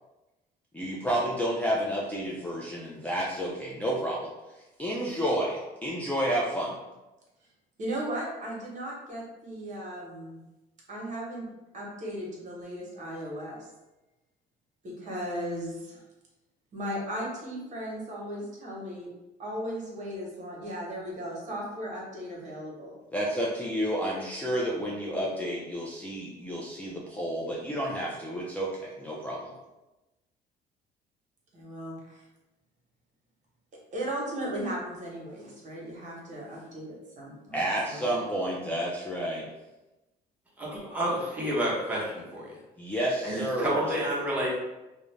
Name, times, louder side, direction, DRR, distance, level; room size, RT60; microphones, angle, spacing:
voice 1, 0.7-4.3 4.8-6.8 23.1-29.5 37.5-39.4 42.8-44.0, equal, 10° left, -5 dB, 0.4 m, -30 dB
voice 2, 7.8-10.4 10.9-11.5 11.7-13.6 14.8-16.0 16.7-19.1 19.4-22.9 25.4-25.6 31.5-32.3 33.9-38.2, equal, 45° right, -3 dB, 0.9 m, -36 dB
voice 3, 40.6-42.6 43.2-44.5, equal, 10° right, -6 dB, 0.9 m, -30 dB
2.4 x 2.0 x 3.1 m, 1.0 s
cardioid pair, 110°, 17 cm